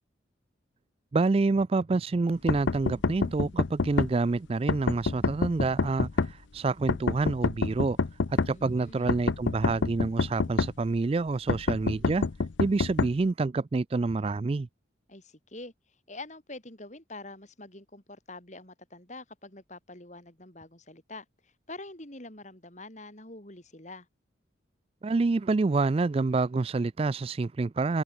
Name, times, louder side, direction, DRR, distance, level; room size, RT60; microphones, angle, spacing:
voice 1, 1.1-8.0 8.3-12.3 12.6-14.7 25.0-28.0, right 3 dB, 30° right, 0.3 m, -27 dB
sound 1, 2.5-4.1 4.7-6.3 6.9-8.5 9.1-10.7 11.5-13.1, left 4 dB, 70° left, 0.6 m, -26 dB
voice 2, 8.5-9.2 15.1-15.7 16.1-24.1, left 2 dB, 40° left, 4.1 m, -45 dB
head